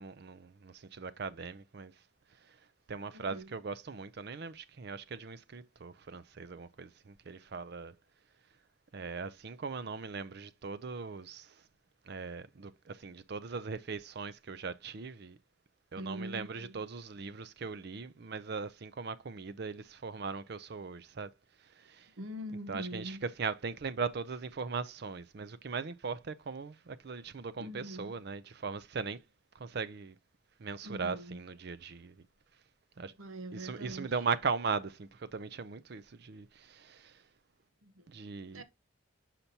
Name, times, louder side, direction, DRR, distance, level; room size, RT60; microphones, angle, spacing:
voice 1, 0.0-1.9 2.4-2.6 2.9-7.9 8.9-11.6 12.0-15.4 15.9-21.3 21.6-22.1 22.5-29.2 29.5-30.2 30.6-32.2 33.0-33.1 33.5-37.2 38.1-38.6, right 5 dB, 50° right, 0.5 m, -39 dB
voice 2, 3.1-3.5 16.0-16.8 22.2-23.2 27.6-28.1 30.8-31.4 33.2-34.1 37.8-38.0 38.5-38.6, equal, 90° right, 1.0 m, -43 dB
6.7 x 5.8 x 2.8 m
head